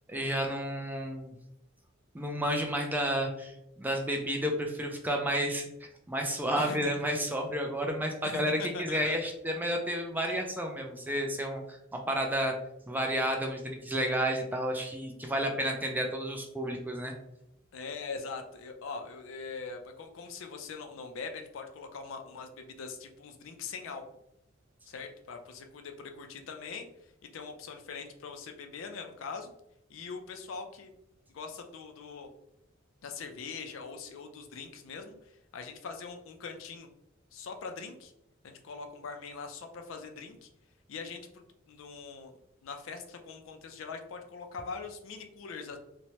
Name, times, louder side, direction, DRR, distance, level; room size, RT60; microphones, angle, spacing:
voice 1, 0.1-1.3 2.1-12.5 12.9-17.1, equal, 10° right, 2 dB, 0.3 m, -31 dB
voice 2, 8.2-9.2 10.3-10.4 17.7-24.0 24.9-29.5 29.9-30.9 31.3-32.3 33.0-36.9 37.3-38.1 38.4-40.5 40.9-45.8, left 5 dB, 70° left, 5 dB, 0.4 m, -42 dB
3.0 x 2.1 x 2.8 m, 0.81 s
head